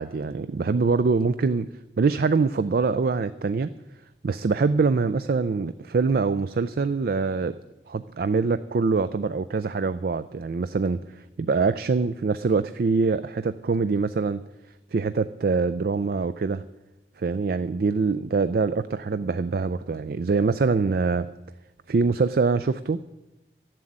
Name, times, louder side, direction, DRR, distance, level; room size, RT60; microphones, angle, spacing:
voice 1, 0.0-1.7 2.0-3.7 4.2-7.6 7.9-11.0 11.4-14.4 14.9-16.6 17.2-21.3 21.9-23.0, right 4 dB, 55° right, 13 dB, 0.4 m, -24 dB
12.5 x 7.6 x 8.7 m, 1.0 s
head